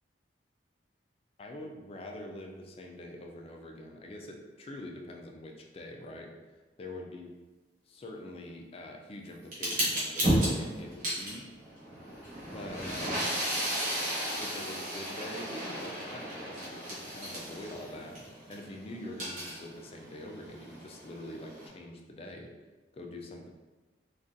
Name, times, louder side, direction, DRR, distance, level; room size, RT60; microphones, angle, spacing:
voice 1, 1.4-6.3 6.8-7.3 7.9-11.5 12.5-13.3 14.4-18.2 18.5-22.5 22.9-23.5, left 1 dB, 30° left, 1 dB, 0.3 m, -44 dB
sound 1, 9.5-18.6 19.0-21.7, right 1 dB, 45° right, 1.1 m, -34 dB
3.6 x 2.4 x 2.6 m, 1.2 s
head